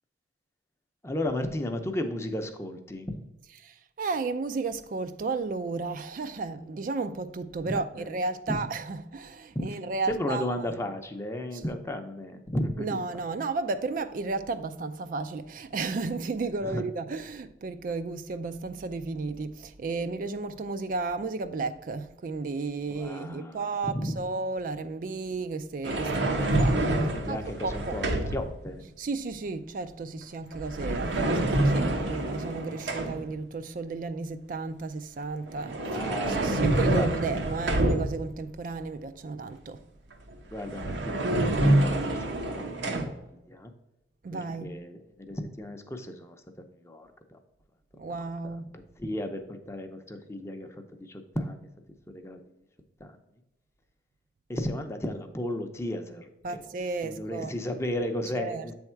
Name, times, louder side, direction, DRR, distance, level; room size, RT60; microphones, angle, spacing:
voice 1, 1.0-3.2 7.6-8.1 8.5-8.6 9.5-9.7 10.1-13.2 16.6-16.9 22.9-24.2 27.1-28.8 35.8-37.1 40.5-42.3 42.6-43.7 44.3-46.4 46.8-47.4 48.4-48.5 49.0-51.7 52.1-52.4 53.0-53.2 54.5-56.6 57.0-58.7, left 1 dB, 15° left, 0.6 m, -34 dB
voice 2, 3.6-10.5 12.8-26.8 27.3-28.0 29.0-36.0 36.3-39.8 44.2-44.7 48.0-48.7 56.4-57.5 58.4-58.7, right 3 dB, 50° right, 0.3 m, -33 dB
sound 1, 25.8-28.5 30.5-33.3 35.5-38.4 40.3-40.4 40.6-43.0, right 1 dB, 90° right, 1.0 m, -27 dB
8.0 x 3.5 x 4.4 m
head